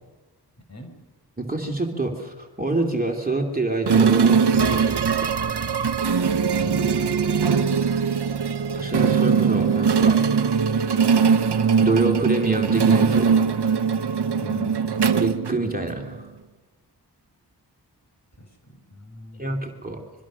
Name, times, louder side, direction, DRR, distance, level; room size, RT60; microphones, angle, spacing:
voice 1, 0.7-1.0 6.6-7.6 14.3-15.0 18.3-19.5, left 2 dB, 40° left, 5 dB, 4.9 m, -41 dB
voice 2, 1.4-5.3 8.7-10.3 11.8-13.5 15.2-16.3 19.4-20.0, right 2 dB, 20° right, 1 dB, 2.7 m, -26 dB
sound 1, 3.9-16.1, right 6 dB, 80° right, 0.9 m, -21 dB
25.0 x 23.5 x 6.3 m, 1.2 s
wide cardioid pair, 70°, 40 cm